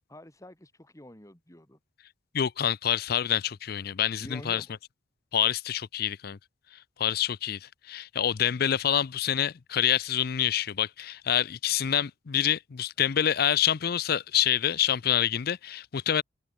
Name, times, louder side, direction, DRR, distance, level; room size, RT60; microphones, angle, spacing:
voice 1, 0.1-1.8 4.2-4.7, left 1 dB, 15° left, 2.9 m, -47 dB
voice 2, 2.3-4.6 5.3-6.4 7.0-16.2, left 10 dB, 50° left, 0.5 m, -27 dB
open air
head